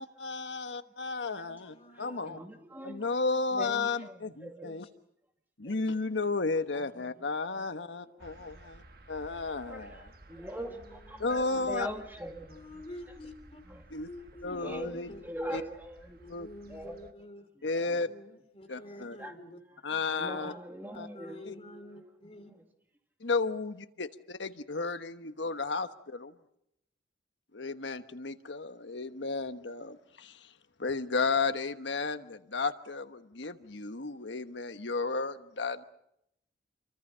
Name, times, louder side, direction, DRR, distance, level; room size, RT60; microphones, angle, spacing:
voice 1, 0.0-2.4 2.8-4.8 5.6-8.8 9.1-10.1 11.2-11.9 13.9-14.1 14.4-15.1 15.5-15.6 16.3-16.5 17.6-18.1 18.7-19.2 19.8-20.5 21.0-21.1 21.4-21.5 23.2-26.3 27.5-30.5 30.8-35.8, left 3 dB, 80° left, 1.2 m, -33 dB
voice 2, 1.3-2.3 4.6-4.8 10.3-11.8 12.5-13.6 14.0-15.2 16.2-17.4 18.0-19.6 21.1-22.5, left 1 dB, 30° left, 3.2 m, -49 dB
voice 3, 1.9-3.1 3.5-5.0 5.6-5.7 6.7-7.2 7.5-7.7 8.0-8.7 9.6-13.2 13.7-13.9 14.5-16.2 16.7-18.0 18.7-18.8 19.2-22.2 22.5-22.6, equal, 10° right, 2.4 m, -44 dB
sound 1, 8.2-17.1, right 1 dB, 55° right, 1.4 m, -55 dB
27.5 x 24.5 x 5.7 m
head